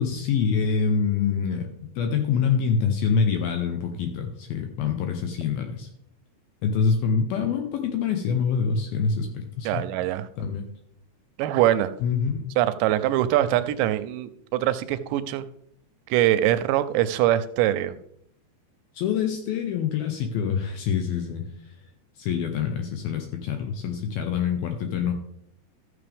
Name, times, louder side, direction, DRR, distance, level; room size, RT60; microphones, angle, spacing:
voice 1, 0.0-1.7 2.0-5.9 6.6-9.9 10.4-10.7 12.0-12.5 18.9-21.4 22.2-25.1, left 6 dB, 75° left, 5 dB, 2.3 m, -25 dB
voice 2, 9.7-10.3 11.4-11.9 12.6-15.4 16.1-18.0, right 13 dB, 85° right, 12 dB, 2.8 m, -23 dB
13.5 x 7.3 x 3.4 m, 0.70 s
omnidirectional pair, 5.1 m